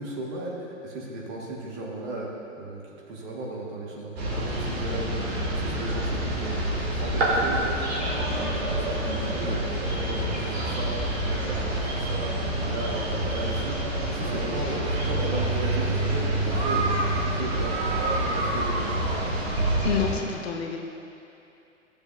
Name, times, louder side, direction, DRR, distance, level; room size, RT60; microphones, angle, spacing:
voice 1, 0.0-2.3 2.6-7.7 8.0-12.3 12.6-19.1, right 2 dB, 35° right, -3 dB, 1.8 m, -35 dB
sound 1, 4.2-20.1, right 1 dB, 55° right, 2.2 m, -27 dB
voice 2, 19.8-20.8, left 7 dB, 55° left, 3 dB, 0.9 m, -29 dB
14.5 x 7.0 x 2.7 m, 2.7 s
figure-of-eight pair, 115°, 38 cm